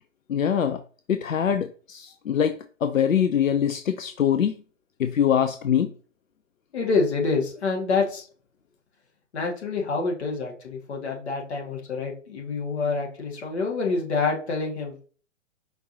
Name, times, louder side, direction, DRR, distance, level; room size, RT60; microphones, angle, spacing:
voice 1, 0.3-0.8 1.1-4.5 5.0-5.9, left 8 dB, 85° left, 9 dB, 0.5 m, -23 dB
voice 2, 6.7-8.2 9.3-14.9, left 4 dB, 55° left, -1 dB, 1.8 m, -27 dB
5.1 x 3.0 x 2.7 m, 0.41 s
figure-of-eight pair, 125°, 39 cm